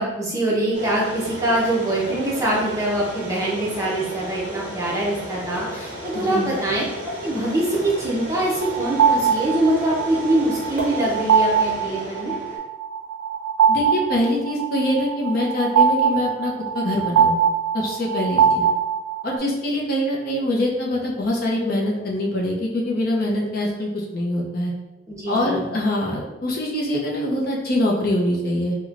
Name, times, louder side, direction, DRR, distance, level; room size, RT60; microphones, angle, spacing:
voice 1, 0.0-6.8 7.2-12.3 25.1-25.7, right 1 dB, 15° right, -5 dB, 0.6 m, -23 dB
sound 1, 0.7-12.6, right 1 dB, 35° right, 1.1 m, -34 dB
voice 2, 6.1-6.5 13.7-17.4 17.7-18.7 19.2-24.7 25.3-28.8, left 1 dB, 50° left, -3 dB, 0.6 m, -24 dB
sound 2, 8.6-19.4, right 7 dB, 90° right, 0.3 m, -21 dB
4.8 x 2.2 x 2.4 m, 1.0 s
head